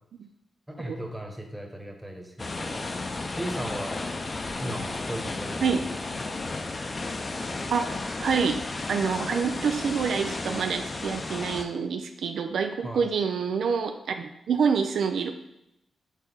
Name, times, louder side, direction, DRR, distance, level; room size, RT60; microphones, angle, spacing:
voice 1, 0.7-2.8 3.4-4.0 4.6-5.6 6.1-6.3 12.8-13.1, right 1 dB, 5° right, 2 dB, 1.1 m, -36 dB
sound 1, 2.4-11.6, left 3 dB, 35° left, 0.6 m, -33 dB
voice 2, 7.7-8.6 8.9-15.3, right 6 dB, 85° right, 6 dB, 0.4 m, -27 dB
6.3 x 3.8 x 4.0 m, 0.85 s
cardioid pair, 95°, 0 cm